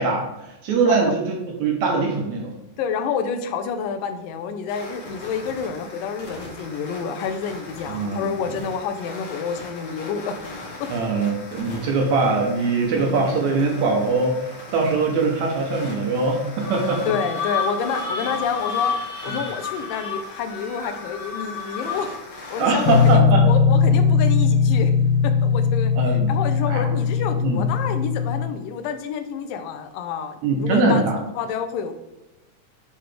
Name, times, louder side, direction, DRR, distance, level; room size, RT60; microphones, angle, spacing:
voice 1, 0.0-2.5 7.9-8.3 10.9-17.0 19.3-19.4 22.6-23.4 26.0-26.3 26.7-26.9 27.4-27.6 30.4-31.2, right 3 dB, 70° right, 0 dB, 1.9 m, -22 dB
voice 2, 2.8-10.4 10.8-10.9 12.9-13.3 17.1-22.1 22.5-24.9 25.2-25.9 26.3-31.1 31.4-31.9, left 6 dB, 85° left, 8 dB, 2.3 m, -28 dB
sound 1, 4.7-23.1, left 2 dB, 45° left, 2.3 m, -40 dB
sound 2, 16.6-22.3, left 5 dB, 25° left, 2.0 m, -30 dB
sound 3, 22.8-28.4, left 5 dB, 65° left, 1.3 m, -19 dB
7.9 x 3.9 x 3.3 m, 0.98 s
omnidirectional pair, 3.9 m